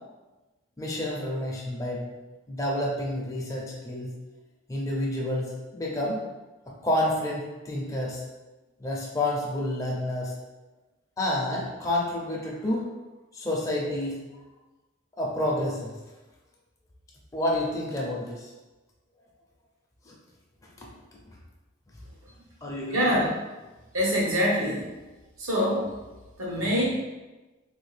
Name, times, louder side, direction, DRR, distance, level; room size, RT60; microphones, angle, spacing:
voice 1, 0.8-2.1 2.5-4.1 4.7-6.2 6.7-8.2 8.8-10.3 11.2-12.9 13.3-14.2 15.2-15.9 17.3-18.5 20.1-20.2 22.6-23.2, left 1 dB, 15° left, -4 dB, 0.5 m, -29 dB
voice 2, 22.9-23.3 23.9-24.9 25.4-25.9 26.4-26.8, equal, 85° right, -3 dB, 1.0 m, -24 dB
3.3 x 2.5 x 3.2 m, 1.1 s
head